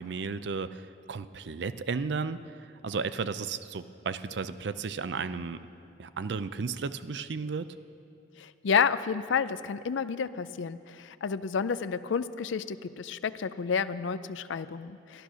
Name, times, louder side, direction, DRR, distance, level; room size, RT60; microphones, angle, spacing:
voice 1, 0.0-5.6 6.0-7.7, right 5 dB, 65° right, 13 dB, 0.5 m, -34 dB
voice 2, 8.4-15.2, left 6 dB, 85° left, 14 dB, 0.4 m, -30 dB
13.5 x 12.0 x 6.2 m, 2.6 s
head